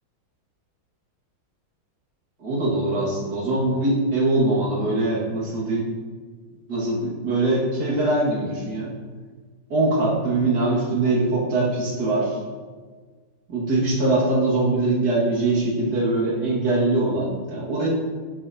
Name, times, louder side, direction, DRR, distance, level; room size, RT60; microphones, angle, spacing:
voice 1, 2.4-5.9 6.7-8.9 9.7-12.4 13.5-17.9, right 2 dB, 55° right, -6 dB, 2.2 m, -22 dB
12.0 x 5.9 x 2.7 m, 1.5 s
omnidirectional pair, 2.3 m